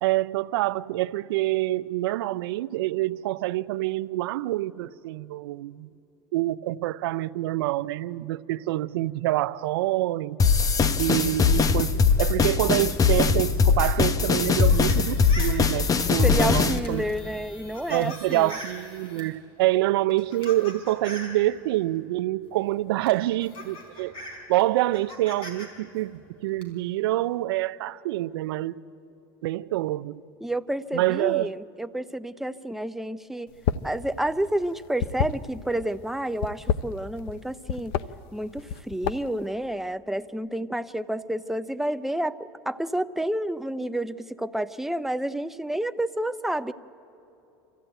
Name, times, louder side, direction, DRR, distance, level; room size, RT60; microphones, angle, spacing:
voice 1, 0.0-5.9 6.3-10.4 11.0-17.0 17.9-24.1 24.5-28.8 29.4-30.2 30.9-31.5, right 16 dB, 85° right, 0.5 m, -26 dB
sound 1, 10.4-16.8, left 5 dB, 30° left, 0.9 m, -21 dB
sound 2, 13.8-19.3 20.0-21.4 22.6-22.7 23.1-25.7 26.0-26.6, left 1 dB, 45° left, 4.8 m, -42 dB
voice 2, 16.2-18.5 30.4-33.5 33.8-38.0 38.3-46.7, right 1 dB, ahead, 0.5 m, -30 dB
sound 3, 33.5-34.0 34.2-35.8 36.3-37.4 37.7-38.1 38.6-39.4, left 9 dB, 75° left, 0.7 m, -28 dB
26.0 x 14.5 x 9.1 m
supercardioid pair, 110°, 12 cm